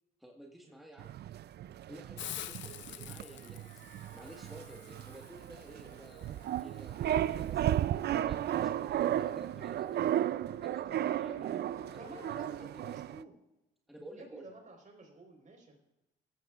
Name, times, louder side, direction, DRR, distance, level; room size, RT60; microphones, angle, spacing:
voice 1, 0.2-1.1 1.9-3.7 4.1-6.4 6.6-10.1 10.6-11.5 11.9-13.0 13.9-14.5, right 1 dB, ahead, -1 dB, 1.5 m, -52 dB
sound 1, 1.0-13.2, right 11 dB, 55° right, 0.4 m, -34 dB
Hiss, 2.2-7.8, left 13 dB, 70° left, 0.5 m, -48 dB
Wind instrument woodwind instrument, 8.4-13.0, left 4 dB, 90° right, 2.9 m, -57 dB
voice 2, 11.1-13.3 14.1-15.7, right 2 dB, 40° right, 3 dB, 4.0 m, -50 dB
16.0 x 14.0 x 2.4 m, 0.93 s
cardioid pair, 90°, 20 cm